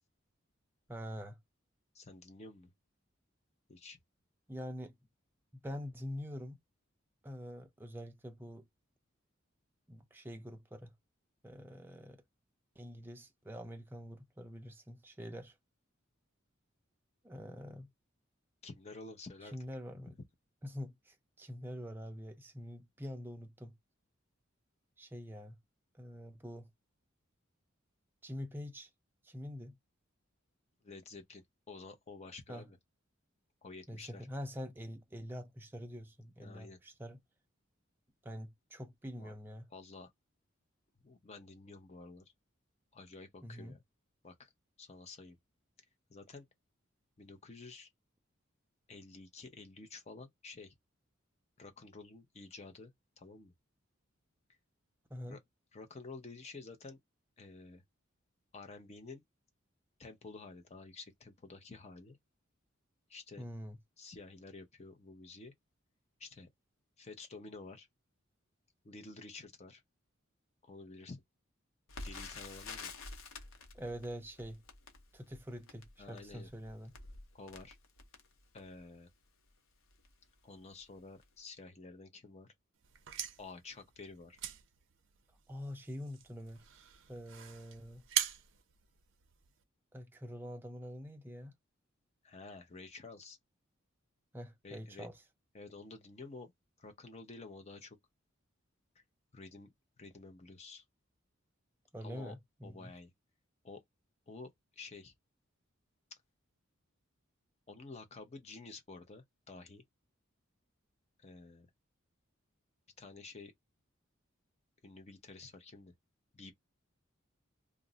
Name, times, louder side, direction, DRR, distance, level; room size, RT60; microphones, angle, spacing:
voice 1, 0.9-1.4 4.5-5.0 5.5-6.6 7.2-8.7 9.9-10.9 11.4-12.2 12.8-15.6 17.2-17.9 19.5-20.2 20.6-23.8 25.0-25.6 25.9-26.7 28.2-28.9 29.2-29.8 32.5-32.7 33.9-37.2 38.2-39.7 43.4-43.8 55.1-55.4 63.4-63.8 73.7-74.6 75.1-76.9 85.5-86.6 87.1-88.0 89.9-91.5 94.3-95.2 101.9-102.9, equal, 10° right, 0.4 m, -45 dB
voice 2, 1.9-2.7 3.7-4.0 18.6-19.6 30.8-32.8 33.6-34.2 36.4-36.8 39.2-39.3 39.7-40.1 41.0-42.3 42.9-43.8 44.2-44.5 44.8-45.4 46.1-46.5 47.2-47.9 48.9-50.7 51.6-52.9 53.2-53.5 55.3-55.4 55.7-57.0 57.4-57.8 58.5-59.2 60.0-62.2 63.1-63.5 64.0-65.5 66.2-66.5 67.0-67.9 68.8-69.8 70.6-71.2 72.0-72.9 76.0-76.5 77.3-77.8 78.5-79.1 80.4-82.5 83.4-84.4 92.2-93.4 94.6-95.1 95.5-96.5 96.8-98.0 99.0-99.1 99.3-99.7 100.0-100.8 102.0-102.3 102.6-103.1 103.6-103.8 104.3-105.1 107.7-109.8 111.2-111.7 113.0-113.5 114.8-115.9 116.3-116.5, left 3 dB, 30° left, 0.6 m, -50 dB
Crackle, 71.9-78.9 79.5-79.6 79.9-80.1 80.7-81.0 81.2-81.3, left 3 dB, 85° left, 0.7 m, -49 dB
sound 1, 82.8-89.6, right 10 dB, 65° right, 0.5 m, -42 dB
2.4 x 2.0 x 3.7 m
head